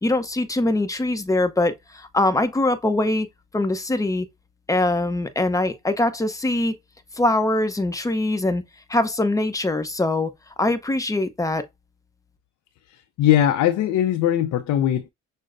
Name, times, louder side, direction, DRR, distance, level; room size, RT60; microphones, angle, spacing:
voice 1, 0.0-3.3 3.5-4.3 4.7-6.7 7.1-8.6 8.9-10.3 10.6-11.6, left 2 dB, 10° left, 0.7 m, -22 dB
voice 2, 13.2-15.1, left 11 dB, 60° left, 0.5 m, -20 dB
6.3 x 2.1 x 2.5 m
supercardioid pair, 80°, 31 cm